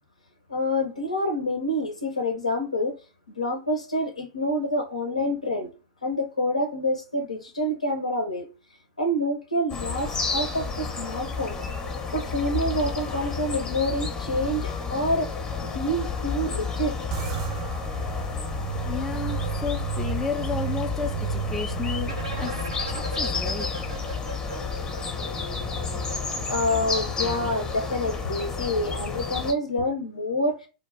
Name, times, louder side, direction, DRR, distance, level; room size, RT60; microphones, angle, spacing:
voice 1, 0.5-3.0 3.3-5.7 6.0-8.5 9.0-11.6 12.1-15.3 15.6-17.0 26.5-30.7, left 1 dB, 85° left, 0.6 m, -27 dB
sound 1, 9.7-29.5, left 5 dB, 25° left, 0.7 m, -31 dB
sound 2, 17.1-27.7, right 9 dB, 55° right, 0.5 m, -35 dB
voice 2, 18.9-23.7, left 5 dB, 5° left, 0.3 m, -33 dB
sound 3, 22.0-25.9, right 1 dB, 85° right, 0.9 m, -38 dB
2.2 x 2.0 x 3.3 m
figure-of-eight pair, 100°, 3 cm